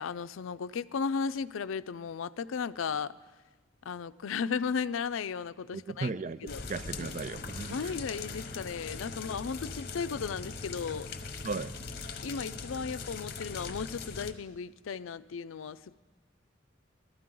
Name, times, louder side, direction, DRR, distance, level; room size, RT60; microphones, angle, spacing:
voice 1, 0.0-3.1 3.9-6.1 6.4-6.6 7.0-7.1 7.7-11.1 12.2-16.0, left 6 dB, 90° left, 0.4 m, -35 dB
voice 2, 5.7-7.9 11.4-11.8, right 4 dB, 40° right, 0.4 m, -36 dB
sound 1, 6.5-14.3, left 4 dB, 50° left, 0.9 m, -41 dB
22.0 x 13.0 x 3.8 m
head